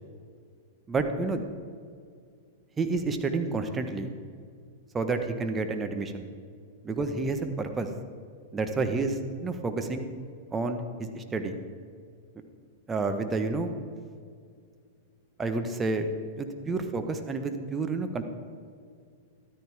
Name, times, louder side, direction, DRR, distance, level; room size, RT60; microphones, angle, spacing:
voice 1, 0.9-1.4 2.8-4.1 4.9-6.3 6.8-7.9 8.5-10.1 10.5-11.6 12.9-13.7 15.4-16.1 16.4-18.2, right 3 dB, 20° right, 6 dB, 1.2 m, -29 dB
13.5 x 13.0 x 3.6 m, 2.2 s
hypercardioid pair, 105°, 0 cm